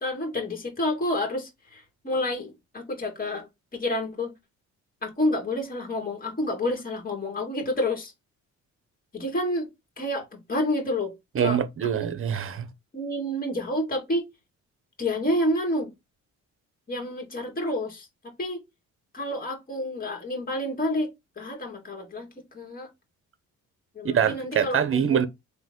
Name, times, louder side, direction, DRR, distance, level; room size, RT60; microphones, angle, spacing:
voice 1, 0.0-3.5 3.7-4.3 5.0-8.1 9.1-9.7 10.0-11.1 11.4-11.9 12.9-14.2 15.0-15.9 16.9-18.1 18.4-18.6 19.1-21.1 21.4-22.3 22.5-22.9 24.0-25.3, left 1 dB, 30° left, 1.9 m, -29 dB
voice 2, 11.3-12.7 24.0-25.3, right 8 dB, 45° right, 0.8 m, -24 dB
4.0 x 2.8 x 3.7 m
cardioid pair, 90°, 30 cm